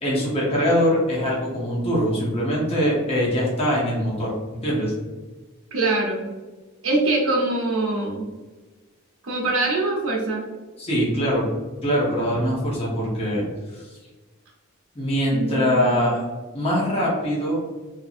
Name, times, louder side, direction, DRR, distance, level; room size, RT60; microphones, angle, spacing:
voice 1, 0.0-4.9 10.8-11.4 11.8-13.5 13.7-13.9 14.9-16.3 16.5-17.6, equal, 25° left, -5 dB, 0.8 m, -23 dB
voice 2, 5.7-6.3 6.8-8.3 9.2-10.5 15.3-16.2, right 2 dB, 70° right, -2 dB, 0.7 m, -23 dB
2.7 x 2.6 x 2.4 m, 1.3 s
head